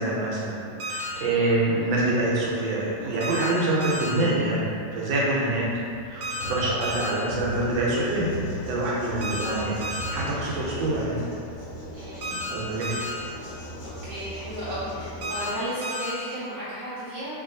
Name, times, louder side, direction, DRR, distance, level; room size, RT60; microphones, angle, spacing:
voice 1, 0.0-5.7 6.0-9.7 10.1-11.2 12.5-12.9, right 2 dB, 85° right, -5 dB, 1.4 m, -26 dB
sound 1, 0.6-11.0, equal, 80° left, 1.3 m, -39 dB
sound 2, 0.8-1.1 3.2-3.5 3.8-4.1 6.2-6.5 6.8-7.1 9.2-9.5 9.8-10.1 12.2-12.5 12.8-13.1 15.2-15.5 15.8-16.1, equal, 65° right, 0.8 m, -32 dB
voice 2, 1.1-1.5 1.8-2.0 9.4-9.7 11.9-12.4 12.8-13.1 13.8-17.3, equal, 35° left, -15 dB, 0.5 m, -35 dB
sound 3, 7.2-15.7, equal, 65° left, 1.0 m, -40 dB
3.0 x 2.8 x 2.6 m, 2.3 s
omnidirectional pair, 2.0 m